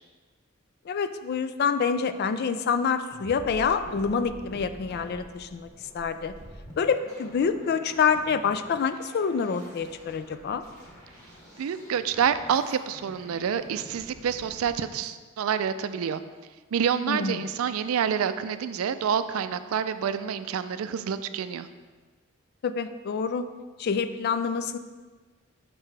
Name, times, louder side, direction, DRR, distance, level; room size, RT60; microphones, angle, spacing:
voice 1, 0.9-5.7 5.9-6.3 6.8-10.6 17.0-17.5 22.6-23.5 23.8-24.8, left 6 dB, 50° left, 11 dB, 0.3 m, -27 dB
sound 1, 3.1-14.7, equal, 15° left, 1.8 m, -47 dB
voice 2, 11.6-16.2 16.7-21.7, right 8 dB, 85° right, 12 dB, 0.4 m, -28 dB
6.5 x 5.9 x 3.3 m, 1.4 s
head